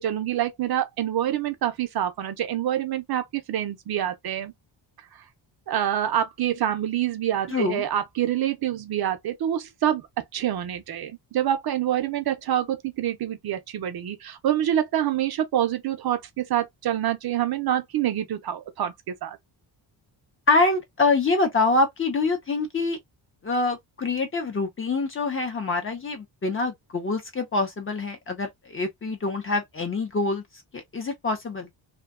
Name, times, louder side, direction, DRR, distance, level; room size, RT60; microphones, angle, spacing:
voice 1, 0.0-4.5 5.7-10.0 10.3-19.4 29.1-29.2, right 11 dB, 55° right, 0.5 m, -26 dB
voice 2, 7.5-7.8 20.5-23.0 23.4-30.4 30.7-31.7, left 3 dB, 25° left, 0.5 m, -25 dB
2.6 x 2.2 x 2.3 m
wide cardioid pair, 150°, 47 cm